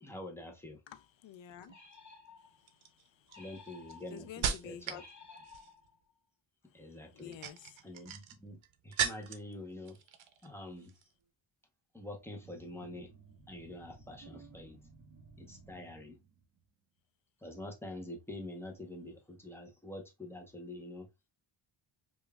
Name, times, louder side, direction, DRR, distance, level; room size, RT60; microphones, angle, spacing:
voice 1, 0.0-0.8 3.4-5.0 6.7-7.4 7.8-10.0 10.4-10.9 11.9-13.1 13.5-14.8 15.4-16.2 17.4-21.1, left 1 dB, 5° left, 0.6 m, -46 dB
voice 2, 0.9-1.7 2.4-3.4 4.1-5.0 5.3-5.4 7.0-7.9, left 9 dB, 70° left, 0.5 m, -50 dB
sound 1, 1.6-2.0 2.7-5.1 5.4-5.9 7.1-9.5 9.8-10.5 10.8-11.0, right 8 dB, 75° right, 0.6 m, -38 dB
sound 2, 1.7-2.7 3.3-4.3 4.9-6.1, left 4 dB, 35° left, 1.0 m, -55 dB
sound 3, 12.4-16.6, right 5 dB, 40° right, 1.7 m, -57 dB
5.0 x 2.4 x 2.2 m
wide cardioid pair, 150°, 48 cm